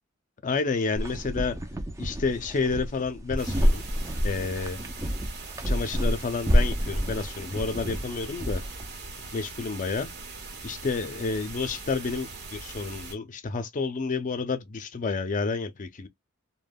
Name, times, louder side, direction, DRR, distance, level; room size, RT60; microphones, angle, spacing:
voice 1, 0.4-1.6 2.0-3.8 4.2-4.8 5.6-8.6 9.3-10.1 10.6-16.1, left 4 dB, 40° left, 0.4 m, -30 dB
sound 1, 0.9-8.9, equal, 15° right, 0.5 m, -28 dB
sound 2, 3.4-13.1, right 3 dB, 55° right, 1.3 m, -41 dB
3.4 x 2.1 x 2.2 m
head